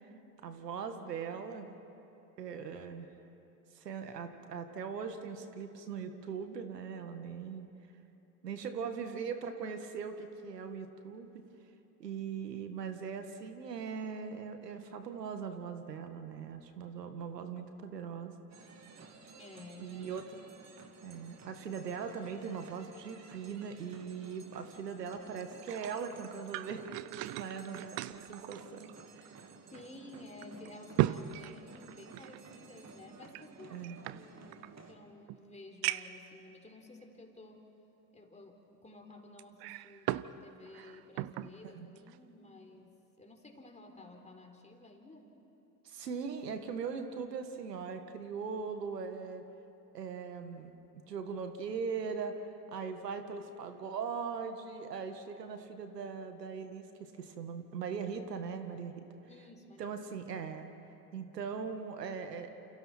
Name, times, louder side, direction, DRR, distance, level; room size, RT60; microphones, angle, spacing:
voice 1, 0.4-1.8 2.4-3.1 3.8-7.7 8.4-11.4 12.0-18.4 19.8-20.4 21.0-26.8 27.2-29.4 33.7-34.0 41.6-41.9 45.8-49.5 49.9-59.0 59.8-60.7 61.1-62.5, right 6 dB, 85° right, 7 dB, 1.8 m, -40 dB
sound 1, 18.5-34.9, right 5 dB, 35° right, 2.5 m, -54 dB
voice 2, 19.3-20.2 29.7-37.6 38.1-45.3 59.3-60.0, left 2 dB, 15° left, 2 dB, 3.9 m, -53 dB
sound 2, 25.4-29.4 29.7-29.8 30.4-32.4 33.3-34.7 35.3-35.4 35.8-36.3 37.0-37.1 39.4-40.3 40.7-41.5 42.0-42.2, right 16 dB, 55° right, 0.8 m, -37 dB
29.0 x 28.5 x 4.5 m, 2.9 s
hypercardioid pair, 75°, 47 cm